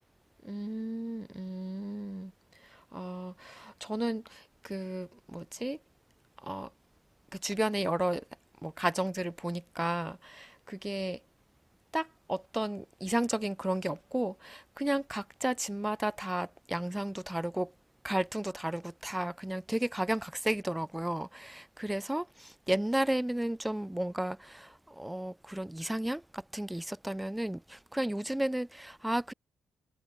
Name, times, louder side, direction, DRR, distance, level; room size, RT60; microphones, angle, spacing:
voice 1, 0.4-2.3 2.9-5.8 6.4-6.7 7.4-8.2 8.6-11.2 11.9-17.7 18.0-29.3, right 1 dB, 5° right, 0.8 m, -33 dB
cardioid pair, 90°, 0 cm